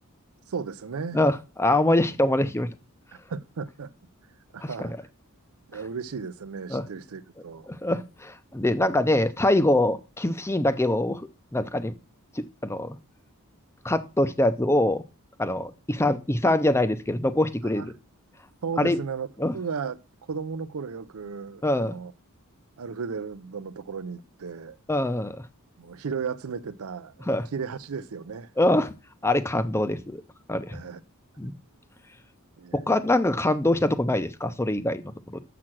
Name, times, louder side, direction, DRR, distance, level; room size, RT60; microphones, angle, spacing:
voice 1, 0.5-1.2 3.3-3.9 4.5-4.9 5.7-7.7 17.7-17.9 18.6-19.3 19.5-20.0 20.3-22.1 22.8-24.8 25.8-28.5 30.7-31.0 32.6-32.9, right 5 dB, 70° right, 0.5 m, -35 dB
voice 2, 1.1-2.7 4.6-4.9 6.7-6.8 7.7-11.9 12.4-13.0 13.8-15.0 15.4-17.9 18.8-19.0 19.4-19.5 21.6-22.0 24.9-25.4 27.3-27.5 28.6-28.9 29.2-30.2 30.5-30.8 31.4-31.5 32.7-35.4, left 1 dB, 10° left, 0.6 m, -24 dB
7.5 x 6.0 x 6.1 m
head